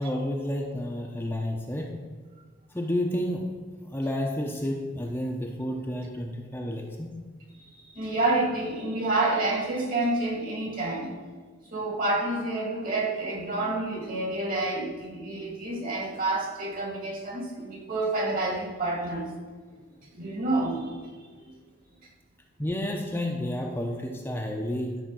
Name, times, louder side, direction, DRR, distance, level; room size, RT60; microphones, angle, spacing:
voice 1, 0.0-2.0 2.7-3.5 3.8-7.1 22.6-25.0, left 1 dB, 10° left, 0 dB, 0.7 m, -30 dB
voice 2, 7.9-11.1 11.7-19.3 19.8-19.9 20.1-21.0 21.4-21.5, right 2 dB, 45° right, 0 dB, 2.1 m, -28 dB
11.5 x 4.6 x 6.2 m, 1.5 s
head